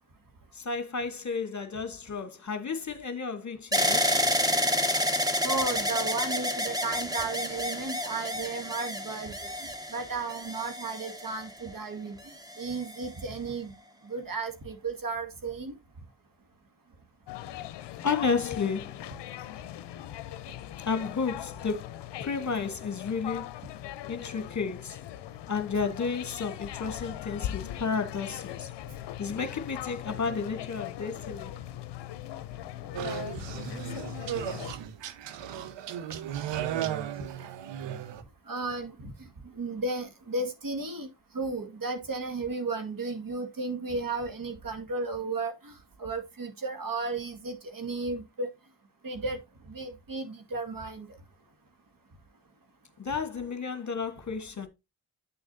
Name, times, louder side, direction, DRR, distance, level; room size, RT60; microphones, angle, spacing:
voice 1, 0.5-4.2 18.0-19.0 20.9-21.9 22.2-23.5 24.1-25.0 25.5-28.7 29.2-31.5 53.0-54.7, left 5 dB, 40° left, 1.4 m, -32 dB
sound 1, 3.7-11.7 12.4-13.1, left 1 dB, 10° right, 1.6 m, -29 dB
voice 2, 5.4-9.3 9.9-12.2 12.6-13.7 14.1-15.7 38.5-39.1 39.6-41.1 41.3-45.7 46.0-48.5 49.0-49.4 49.7-51.1, right 3 dB, 50° right, 2.0 m, -34 dB
sound 2, 17.3-34.7, left 13 dB, 70° left, 0.7 m, -40 dB
sound 3, 32.9-38.2, right 10 dB, 75° right, 0.9 m, -35 dB
9.1 x 6.4 x 2.7 m
hypercardioid pair, 40°, 44 cm